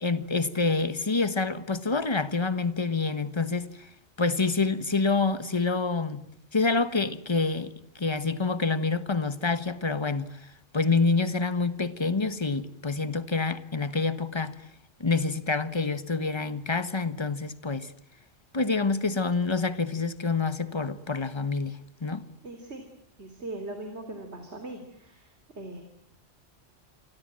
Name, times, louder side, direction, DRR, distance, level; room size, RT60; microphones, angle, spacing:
voice 1, 0.0-3.9 4.2-6.3 6.5-14.6 15.0-17.9 18.5-22.2, left 4 dB, 25° left, 1.3 m, -27 dB
voice 2, 22.4-22.8 23.2-25.8, right 2 dB, 65° right, 3.6 m, -40 dB
28.5 x 25.5 x 7.6 m
omnidirectional pair, 1.2 m